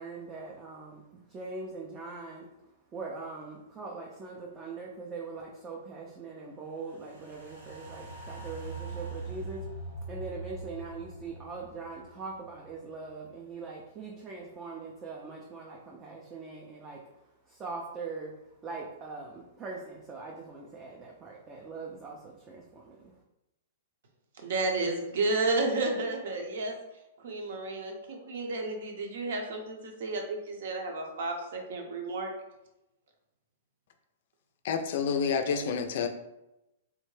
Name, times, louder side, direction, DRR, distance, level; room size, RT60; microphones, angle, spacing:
voice 1, 0.0-23.1, right 4 dB, 20° right, -2 dB, 0.4 m, -42 dB
sound 1, 6.8-13.2 13.6-13.7, right 3 dB, 85° right, 1.2 m, -42 dB
voice 2, 24.4-26.8 27.2-32.3, right 2 dB, 70° right, 3 dB, 0.7 m, -32 dB
voice 3, 34.6-36.1, left 6 dB, 60° left, 7 dB, 0.4 m, -28 dB
3.5 x 2.1 x 3.1 m, 0.93 s
hypercardioid pair, 150°, 0 cm